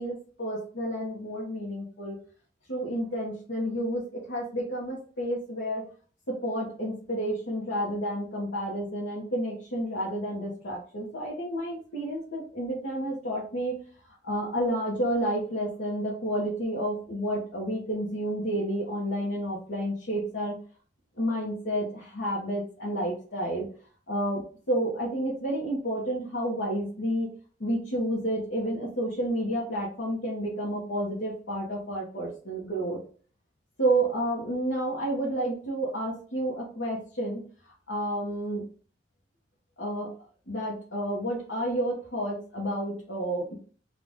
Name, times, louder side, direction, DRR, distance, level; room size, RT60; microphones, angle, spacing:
voice 1, 0.0-2.2 2.7-5.8 6.3-13.7 14.2-20.5 21.2-23.7 24.1-27.3 27.6-33.0 33.8-37.4 37.9-38.6 39.8-40.1 40.5-43.6, right 1 dB, 80° left, -4 dB, 1.1 m, -30 dB
3.8 x 2.5 x 3.6 m, 0.42 s
head